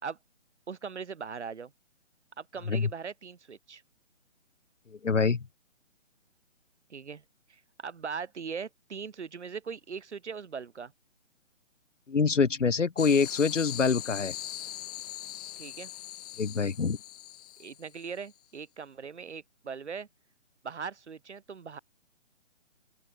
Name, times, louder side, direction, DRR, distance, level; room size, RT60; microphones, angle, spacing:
voice 1, 0.7-1.7 2.4-3.8 6.9-7.2 7.5-10.9 15.6-15.9 17.6-20.1 20.6-21.8, right 6 dB, 65° right, 3.4 m, -40 dB
voice 2, 5.0-5.5 12.1-14.3 16.4-17.0, left 5 dB, 75° left, 2.3 m, -25 dB
sound 1, 13.0-18.1, left 13 dB, 30° left, 3.7 m, -41 dB
open air
figure-of-eight pair, 150°, 37 cm